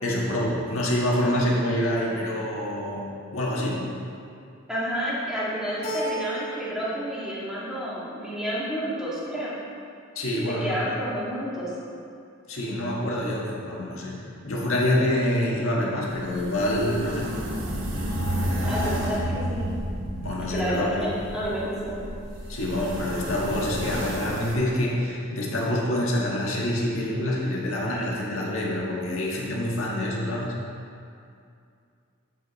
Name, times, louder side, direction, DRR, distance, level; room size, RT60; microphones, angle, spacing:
voice 1, 0.0-3.0 3.3-3.8 10.1-10.7 12.5-17.3 20.2-21.1 22.5-30.5, left 1 dB, 80° left, -4 dB, 1.6 m, -26 dB
voice 2, 4.7-9.6 10.5-11.7 18.6-19.7 20.5-22.0, equal, 5° right, -9 dB, 1.7 m, -30 dB
Keyboard (musical), 5.8-6.9 7.2-8.0, right 1 dB, 30° left, 1.7 m, -34 dB
sound 1, 16.1-24.6, equal, 65° right, 1.2 m, -31 dB
8.4 x 7.7 x 4.0 m, 2.4 s
head